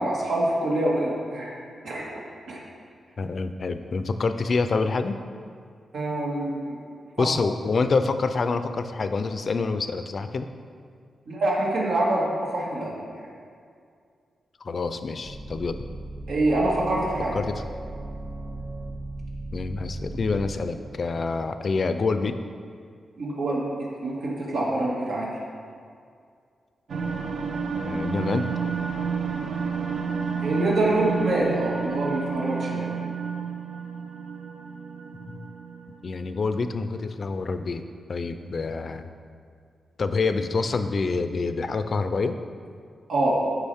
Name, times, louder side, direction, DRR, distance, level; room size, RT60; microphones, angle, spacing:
voice 1, 0.0-1.5 1.8-2.2 2.5-2.6 5.9-6.8 7.2-7.3 11.3-13.3 16.3-17.4 23.2-25.3 30.4-32.9 43.1-43.4, right 1 dB, 85° right, -5 dB, 2.3 m, -25 dB
voice 2, 3.2-5.2 7.2-10.5 14.6-15.9 17.3-17.6 19.5-22.4 27.8-28.5 35.3-35.4 36.0-37.8 38.1-39.1 40.0-42.3, left 4 dB, 50° left, 9 dB, 0.5 m, -27 dB
sound 1, 15.2-20.5, right 2 dB, 45° right, 1.7 m, -37 dB
sound 2, 26.9-36.3, right 6 dB, 65° right, 0.8 m, -30 dB
14.0 x 4.9 x 3.5 m, 2.3 s
wide cardioid pair, 120°, 0 cm